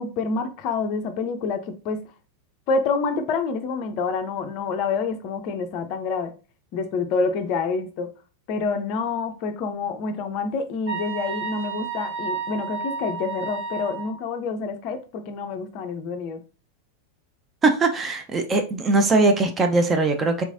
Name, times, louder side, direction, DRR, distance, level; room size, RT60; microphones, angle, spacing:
voice 1, 0.0-2.1 2.7-6.3 6.7-8.1 8.5-16.4, left 4 dB, 40° left, 0.4 m, -27 dB
sound 1, 10.9-14.1, right 4 dB, 40° right, 1.4 m, -31 dB
voice 2, 17.6-20.4, right 3 dB, 20° right, 0.5 m, -20 dB
3.4 x 3.0 x 2.5 m
figure-of-eight pair, 90°, 0 cm